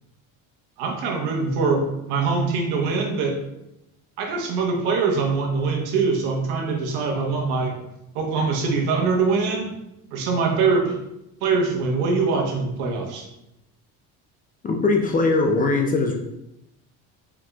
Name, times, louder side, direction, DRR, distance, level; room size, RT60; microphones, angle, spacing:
voice 1, 0.8-3.4 4.2-7.8 8.1-9.7 10.1-11.0 11.4-13.2, right 4 dB, 80° right, 1 dB, 1.1 m, -23 dB
voice 2, 14.6-16.1, left 3 dB, 25° left, 2 dB, 0.4 m, -20 dB
4.5 x 4.1 x 2.3 m, 0.86 s
cardioid pair, 135°, 37 cm